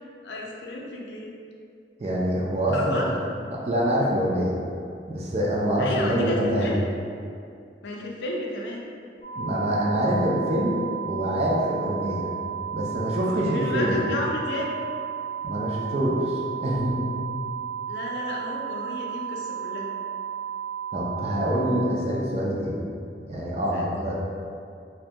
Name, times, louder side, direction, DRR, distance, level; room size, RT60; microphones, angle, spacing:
voice 1, 0.2-1.4 2.7-3.1 5.8-6.8 7.8-8.8 13.2-14.7 17.9-19.9 23.7-24.0, left 2 dB, 85° left, -2 dB, 0.4 m, -32 dB
voice 2, 2.0-3.1 3.5-4.5 5.1-6.7 9.4-10.7 11.0-12.3 12.7-14.0 15.4-17.0 20.9-22.8 23.2-24.1, equal, 35° right, -4 dB, 0.4 m, -25 dB
sound 1, 9.2-21.9, right 8 dB, 45° left, 0.6 m, -33 dB
2.2 x 2.2 x 2.7 m, 2.4 s
head